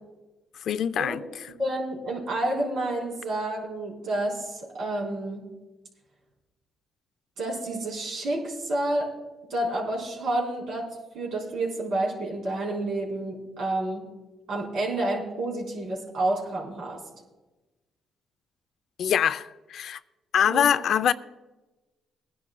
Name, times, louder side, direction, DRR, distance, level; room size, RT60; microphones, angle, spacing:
voice 1, 0.6-1.2 19.0-20.0 20.3-21.1, left 9 dB, 70° left, 0.4 m, -24 dB
voice 2, 1.6-5.4 7.4-9.1 9.5-10.9 11.1-14.0 14.5-17.0 20.4-20.7, right 1 dB, 75° right, 4.0 m, -29 dB
21.5 x 10.5 x 2.3 m
cardioid pair, 90°, 0 cm